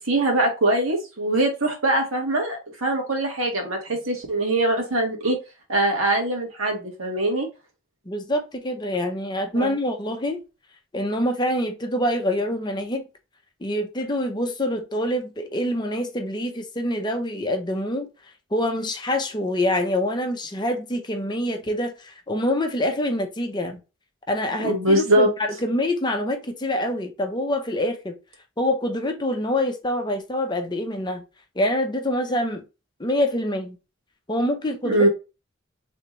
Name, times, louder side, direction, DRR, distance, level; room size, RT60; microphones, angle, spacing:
voice 1, 0.0-5.4 5.7-7.5 9.5-9.7 24.6-25.3 34.8-35.1, right 1 dB, 80° right, 1.6 m, -22 dB
voice 2, 8.1-10.4 10.9-13.0 13.6-18.1 18.5-23.8 24.3-28.1 28.6-31.2 31.6-32.6 33.0-33.8 34.3-35.1, left 1 dB, 20° left, 0.7 m, -25 dB
4.0 x 3.4 x 3.1 m
head